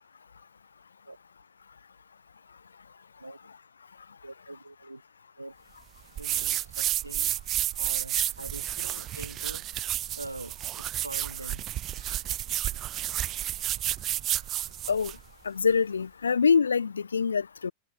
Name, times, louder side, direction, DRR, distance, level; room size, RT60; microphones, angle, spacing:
voice 1, 4.2-5.0 5.4-5.6 6.2-7.4 7.8-9.7 10.2-11.7, right 2 dB, 85° right, 3.0 m, -43 dB
sound 1, 6.2-15.2, right 13 dB, 30° right, 0.7 m, -31 dB
voice 2, 15.4-17.7, left 6 dB, 75° left, 1.0 m, -25 dB
figure-of-eight pair, 90°, 0 cm